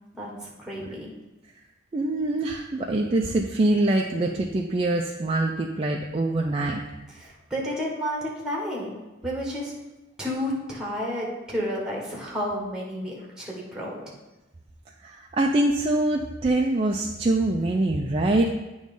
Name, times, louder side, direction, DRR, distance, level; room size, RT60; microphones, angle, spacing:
voice 1, 0.2-1.1 7.2-8.9 9.2-9.7 10.2-14.0, equal, 5° right, -3 dB, 1.5 m, -31 dB
voice 2, 1.9-6.8 15.0-18.5, right 2 dB, 30° right, 0 dB, 0.4 m, -24 dB
9.0 x 3.1 x 5.3 m, 1.0 s
head